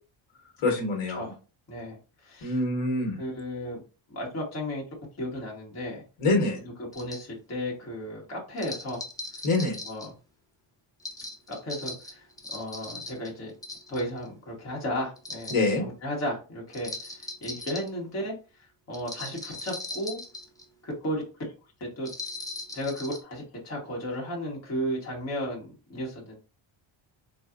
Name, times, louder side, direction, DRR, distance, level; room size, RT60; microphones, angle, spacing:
voice 1, 0.6-1.3 2.4-3.2 6.2-6.6 9.4-9.8 15.5-15.8, left 2 dB, 75° left, 2 dB, 1.2 m, -25 dB
voice 2, 2.2-2.6 3.2-3.8 4.1-4.8 5.2-6.0 6.9-9.0 9.9-10.1 11.5-12.3 12.5-13.5 13.9-17.1 17.4-18.3 18.9-20.2 20.8-21.2 21.8-22.1 22.7-26.4, equal, 30° left, -3 dB, 1.2 m, -34 dB
sound 1, 6.9-7.2 8.6-10.1 11.0-13.3 13.6-14.2 15.2-15.7 16.7-17.9 18.9-20.6 22.0-23.2, left 2 dB, 10° left, 0.4 m, -39 dB
4.0 x 2.3 x 2.4 m, 0.33 s
cardioid pair, 145°, 49 cm